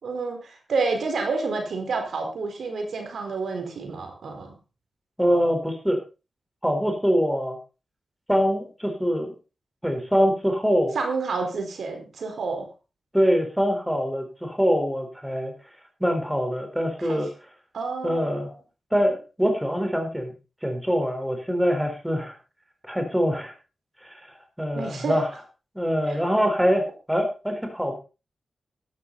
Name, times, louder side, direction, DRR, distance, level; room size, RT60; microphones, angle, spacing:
voice 1, 0.0-4.6 10.9-12.7 17.0-17.2 17.7-18.5 24.7-25.2 26.1-26.2, right 4 dB, 80° right, 4 dB, 4.3 m, -29 dB
voice 2, 5.2-6.0 6.6-7.6 8.3-9.3 9.8-11.0 13.1-15.5 16.0-17.3 18.0-18.5 18.9-20.3 20.6-22.3 22.8-23.5 24.0-24.2 24.6-25.3 25.7-28.0, equal, 5° right, 5 dB, 4.3 m, -24 dB
13.5 x 11.5 x 4.1 m, 0.31 s
wide cardioid pair, 95°, 0 cm